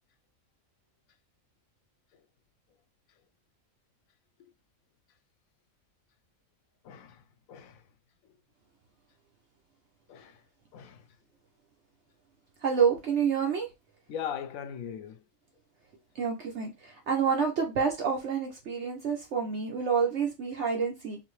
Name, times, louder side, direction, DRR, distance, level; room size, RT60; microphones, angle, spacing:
voice 1, 6.8-7.2 7.5-7.8 10.1-10.4 10.7-11.0 14.1-15.2 19.7-19.8, left 8 dB, 85° left, 1.0 m, -39 dB
voice 2, 12.6-13.7 16.1-21.2, right 6 dB, 60° right, 1.0 m, -28 dB
4.1 x 2.7 x 3.1 m
omnidirectional pair, 1.4 m